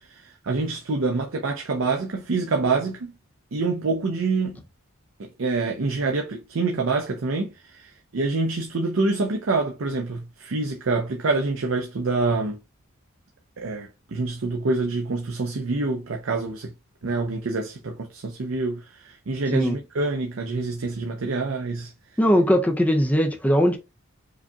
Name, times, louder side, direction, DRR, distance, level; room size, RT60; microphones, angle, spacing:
voice 1, 0.5-3.0 3.5-4.6 5.4-7.5 8.1-12.6 13.6-16.7 17.0-17.9 18.2-18.8 19.3-21.9, right 3 dB, 65° right, 0.6 m, -26 dB
voice 2, 22.2-23.8, equal, 5° left, 0.5 m, -20 dB
4.9 x 2.7 x 2.3 m
head